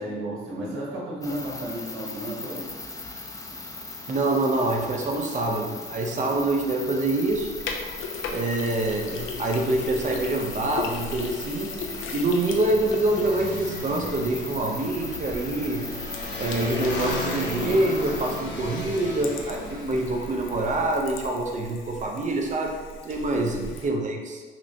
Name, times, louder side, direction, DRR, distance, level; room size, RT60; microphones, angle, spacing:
voice 1, 0.0-2.7 23.3-23.7, right 1 dB, 85° right, -4 dB, 1.1 m, -33 dB
sound 1, 1.2-18.4, left 3 dB, 15° left, 0.5 m, -38 dB
voice 2, 4.1-7.5 8.3-11.7 12.1-15.9 16.4-23.6 23.8-24.4, right 2 dB, 40° right, 2 dB, 0.6 m, -26 dB
Sink (filling or washing), 7.3-23.9, left 3 dB, 80° left, 0.5 m, -38 dB
Motorcycle, 10.4-20.9, left 1 dB, 65° left, 1.0 m, -36 dB
5.8 x 2.1 x 2.8 m, 1.4 s
cardioid pair, 90°, 20 cm